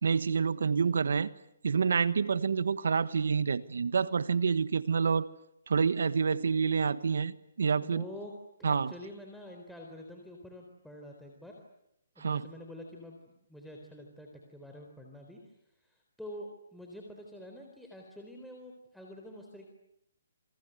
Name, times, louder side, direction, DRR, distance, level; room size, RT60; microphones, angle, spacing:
voice 1, 0.0-1.3 1.6-5.3 5.7-8.0 8.6-8.9 12.2-12.5, right 5 dB, 75° right, 1.3 m, -28 dB
voice 2, 7.8-8.3 8.6-11.6 12.2-15.4 15.8-19.7, left 1 dB, ahead, 3.9 m, -47 dB
28.5 x 26.0 x 8.0 m
hypercardioid pair, 150°, 0 cm